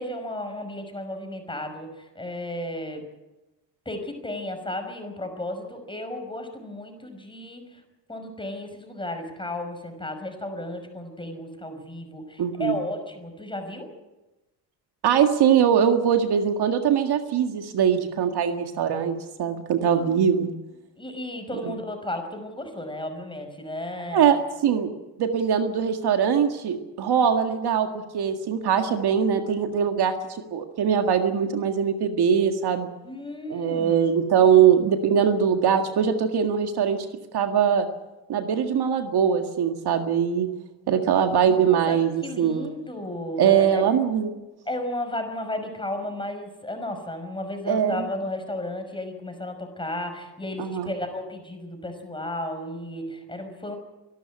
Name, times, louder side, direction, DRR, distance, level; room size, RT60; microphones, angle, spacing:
voice 1, 0.0-3.0 3.9-7.8 8.1-13.9 19.9-20.2 21.0-24.3 33.0-34.0 41.4-43.8 44.7-53.8, left 1 dB, 10° left, 6 dB, 5.5 m, -34 dB
voice 2, 12.4-12.8 15.0-20.5 21.6-21.8 24.1-24.9 25.2-27.9 28.1-30.1 30.5-32.9 33.5-37.1 37.3-37.9 38.3-40.5 40.9-42.7 43.4-44.4 47.7-48.1 50.6-50.9, right 8 dB, 55° right, 6 dB, 1.9 m, -22 dB
25.0 x 12.5 x 9.7 m, 1.1 s
cardioid pair, 100°, 46 cm